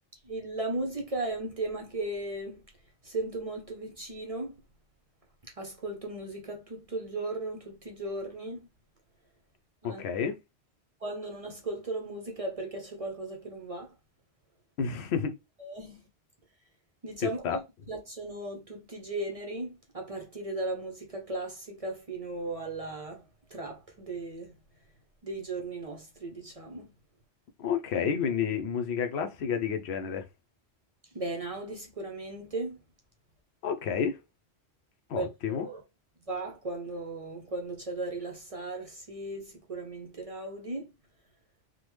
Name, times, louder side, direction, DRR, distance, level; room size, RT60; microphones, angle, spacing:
voice 1, 0.2-2.6 3.0-4.6 5.6-8.6 9.8-10.0 11.0-13.9 15.6-16.0 17.0-17.6 17.9-23.2 23.5-24.5 25.2-26.9 31.1-32.8 35.1-35.8 36.3-40.9, right 2 dB, 40° right, 0.6 m, -36 dB
voice 2, 9.8-10.4 14.8-15.3 17.2-17.6 27.6-30.3 33.6-34.2 35.1-35.7, left 7 dB, 75° left, 0.8 m, -30 dB
3.5 x 2.2 x 3.0 m
omnidirectional pair, 1.1 m